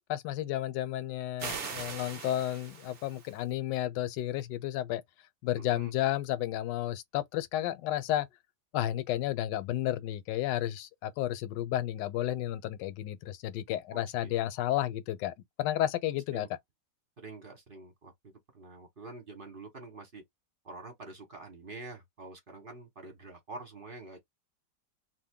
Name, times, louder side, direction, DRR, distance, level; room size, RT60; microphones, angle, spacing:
voice 1, 0.1-5.0 5.4-8.3 8.7-16.5, left 13 dB, 80° left, 1.2 m, -32 dB
sound 1, 1.4-3.4, right 5 dB, 50° right, 0.7 m, -40 dB
voice 2, 5.6-5.9 13.9-14.3 16.3-16.4 17.2-20.2 20.6-24.2, right 3 dB, 35° right, 1.1 m, -47 dB
2.8 x 2.5 x 3.6 m
omnidirectional pair, 1.9 m